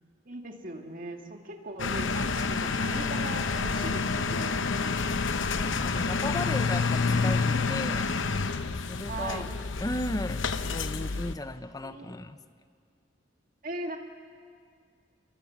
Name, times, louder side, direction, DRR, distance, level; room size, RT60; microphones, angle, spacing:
voice 1, 0.3-5.1 9.1-9.5 11.8-12.2 13.6-14.0, right 2 dB, 45° right, 3 dB, 2.0 m, -39 dB
sound 1, 1.8-11.3, left 4 dB, 80° left, 0.9 m, -28 dB
voice 2, 5.6-8.4 8.9-9.5 9.8-12.4, left 1 dB, 20° left, 12 dB, 0.6 m, -36 dB
26.5 x 22.5 x 7.4 m, 2.2 s
head